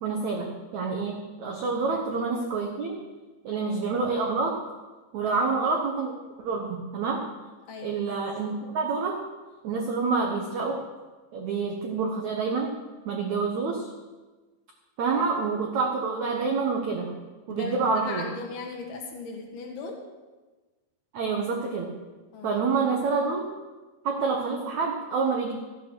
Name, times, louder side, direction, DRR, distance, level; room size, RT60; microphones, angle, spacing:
voice 1, 0.0-2.9 3.4-4.6 5.1-6.1 6.4-7.2 7.8-9.2 9.6-10.8 11.3-12.7 13.0-13.9 15.0-17.1 17.5-18.3 21.1-21.9 22.4-23.5 24.0-25.5, right 4 dB, 85° right, 1 dB, 1.6 m, -27 dB
voice 2, 1.9-2.3 5.2-5.4 7.7-8.0 17.5-20.1 22.3-22.6, left 3 dB, 65° left, 1 dB, 3.5 m, -38 dB
14.0 x 9.0 x 6.1 m, 1.3 s
omnidirectional pair, 5.2 m